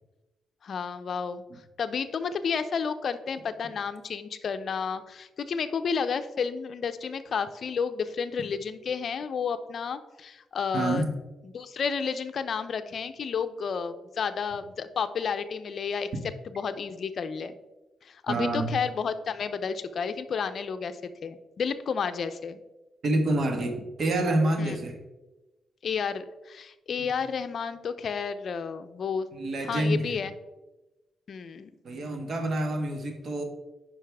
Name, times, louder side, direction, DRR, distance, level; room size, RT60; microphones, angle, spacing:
voice 1, 0.6-1.4 1.8-11.0 11.5-16.1 16.5-17.6 18.0-22.6 24.6-24.8 25.8-29.3 29.7-30.3 31.3-31.7, left 6 dB, 60° left, 11 dB, 0.5 m, -31 dB
voice 2, 10.7-11.1 18.3-18.7 23.0-25.0 27.0-27.1 29.3-30.0 31.8-33.4, right 1 dB, 55° right, 5 dB, 1.4 m, -27 dB
9.5 x 5.5 x 3.4 m, 1.1 s
cardioid pair, 85°, 0 cm